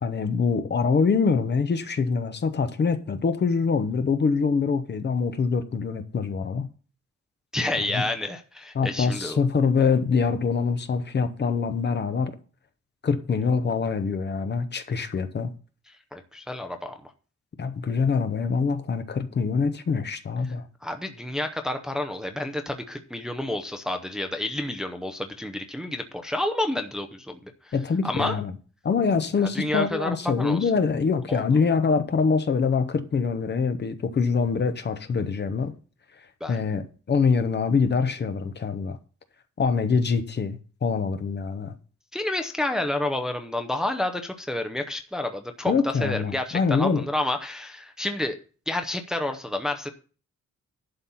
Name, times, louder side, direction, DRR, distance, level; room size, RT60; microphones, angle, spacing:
voice 1, 0.0-6.7 7.9-8.0 8.7-12.3 13.0-15.5 17.6-20.6 27.7-28.5 28.8-35.7 36.5-39.0 39.6-41.7 45.7-47.0, left 5 dB, 35° left, 0.8 m, -24 dB
voice 2, 7.5-9.4 16.1-17.0 20.8-27.7 28.0-28.3 29.5-30.7 31.3-31.4 36.4-36.6 42.1-48.4 48.7-49.9, left 1 dB, ahead, 0.7 m, -29 dB
11.5 x 4.2 x 7.0 m
wide cardioid pair, 175°, 29 cm